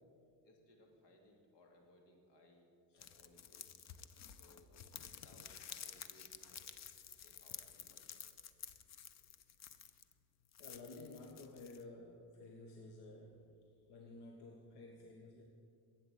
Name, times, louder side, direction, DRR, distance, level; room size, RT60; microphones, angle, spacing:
voice 1, 0.4-3.7 4.3-4.8 5.2-6.8 7.2-8.2 9.1-9.2, left 1 dB, 85° left, 1 dB, 2.8 m, -66 dB
sound 1, 3.0-10.1 10.5-11.8, left 8 dB, 40° left, 0.7 m, -52 dB
voice 2, 10.6-13.5 13.9-15.4, left 2 dB, 65° left, 1 dB, 1.5 m, -53 dB
12.5 x 8.6 x 8.2 m, 2.4 s
cardioid pair, 130°, 43 cm